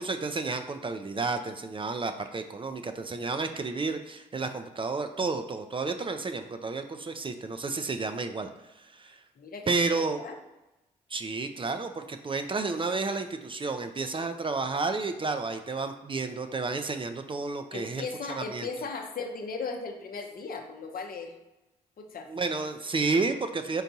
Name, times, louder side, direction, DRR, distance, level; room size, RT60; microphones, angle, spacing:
voice 1, 0.0-8.5 8.8-9.2 9.7-10.2 11.1-18.7 22.3-23.8, right 3 dB, 30° right, 7 dB, 0.4 m, -31 dB
voice 2, 9.4-10.4 17.7-21.3 22.0-22.3, left 4 dB, 55° left, 4 dB, 0.7 m, -37 dB
4.4 x 3.8 x 2.7 m, 0.97 s
supercardioid pair, 40°, 17 cm